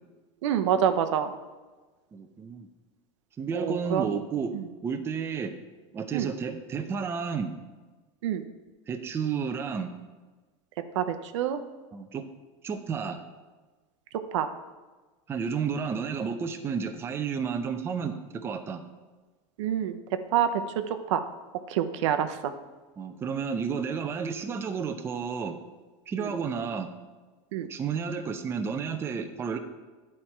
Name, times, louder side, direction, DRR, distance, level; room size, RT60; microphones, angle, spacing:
voice 1, 0.4-1.3 3.5-4.1 4.5-4.6 6.1-6.3 8.2-8.4 10.9-11.6 14.1-14.5 19.6-20.0 20.3-21.3 21.7-22.5 26.2-26.3 27.5-27.7, right 9 dB, 85° right, 9 dB, 0.7 m, -27 dB
voice 2, 2.1-2.7 3.4-4.5 4.8-5.5 5.9-7.5 8.9-9.9 11.9-12.2 12.6-13.2 15.3-18.8 23.0-25.6 26.1-26.9 27.6-29.6, right 6 dB, 15° right, 7 dB, 0.4 m, -31 dB
10.0 x 4.3 x 4.4 m, 1.3 s
supercardioid pair, 150°, 15 cm